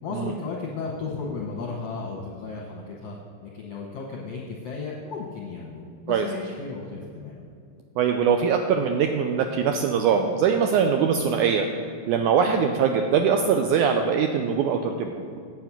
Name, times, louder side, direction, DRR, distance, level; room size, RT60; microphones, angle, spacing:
voice 1, 0.0-3.1 3.4-7.5, left 4 dB, 70° left, -2 dB, 1.6 m, -34 dB
voice 2, 8.0-11.7 12.1-15.3, right 7 dB, 85° right, 5 dB, 1.8 m, -22 dB
8.6 x 8.0 x 6.0 m, 2.4 s
omnidirectional pair, 4.1 m